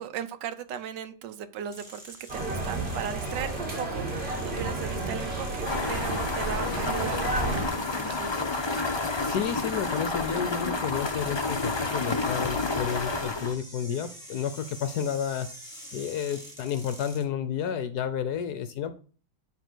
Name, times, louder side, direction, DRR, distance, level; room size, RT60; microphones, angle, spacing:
voice 1, 0.0-8.4, right 9 dB, 70° right, 11 dB, 1.3 m, -37 dB
sound 1, 1.7-17.2, equal, ahead, 3.8 m, -47 dB
sound 2, 2.3-7.7, right 2 dB, 30° right, 2.4 m, -31 dB
sound 3, 5.7-13.5, left 3 dB, 45° left, 0.3 m, -30 dB
voice 2, 9.2-15.5 15.9-19.0, left 8 dB, 65° left, 11 dB, 1.1 m, -31 dB
10.0 x 3.4 x 6.1 m, 0.40 s
omnidirectional pair, 2.1 m